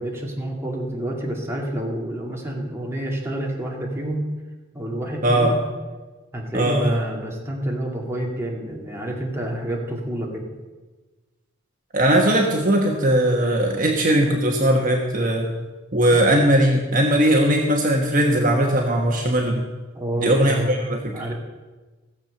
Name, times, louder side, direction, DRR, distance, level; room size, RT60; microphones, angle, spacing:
voice 1, 0.0-4.3 4.7-5.6 6.3-10.5 16.6-16.8 19.9-20.7 21.1-21.3, right 1 dB, 15° right, -2 dB, 2.3 m, -28 dB
voice 2, 5.2-5.5 6.5-7.0 11.9-15.5 15.9-19.6 20.2-21.1, right 1 dB, 45° right, 1 dB, 1.4 m, -19 dB
16.5 x 7.5 x 6.7 m, 1.3 s
head